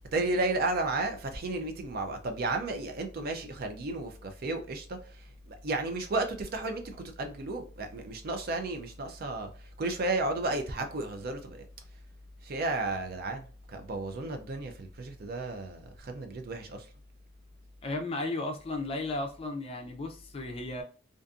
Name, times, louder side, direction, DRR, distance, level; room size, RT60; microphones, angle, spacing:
voice 1, 0.1-11.7 12.4-16.9, right 2 dB, 50° right, 0.4 m, -33 dB
voice 2, 17.8-20.8, left 2 dB, 30° left, 0.4 m, -34 dB
2.5 x 2.5 x 2.3 m
head